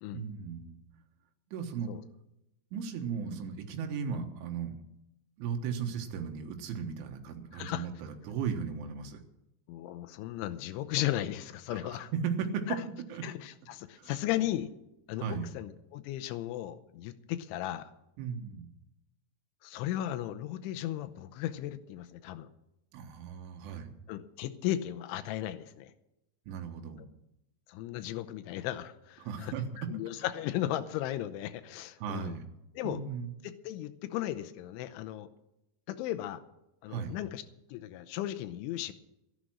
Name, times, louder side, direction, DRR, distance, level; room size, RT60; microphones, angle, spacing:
voice 1, 0.1-0.8 1.5-1.9 2.7-4.8 5.4-9.2 11.7-11.8 12.2-12.8 13.1-13.2 14.0-14.1 15.2-15.5 18.2-18.7 22.9-23.9 26.5-27.1 29.2-29.6 32.0-32.4 32.8-33.3 36.9-37.1, right 7 dB, 80° right, 4 dB, 3.8 m, -36 dB
voice 2, 7.5-7.9 9.7-12.1 12.7-12.8 13.2-14.7 15.1-17.9 19.6-22.5 24.1-25.9 27.7-32.4 32.7-33.0 33.4-35.3 35.9-36.4 36.8-37.4 37.7-38.9, left 13 dB, 85° left, 9 dB, 3.2 m, -36 dB
13.0 x 11.5 x 6.2 m, 0.88 s
omnidirectional pair, 5.5 m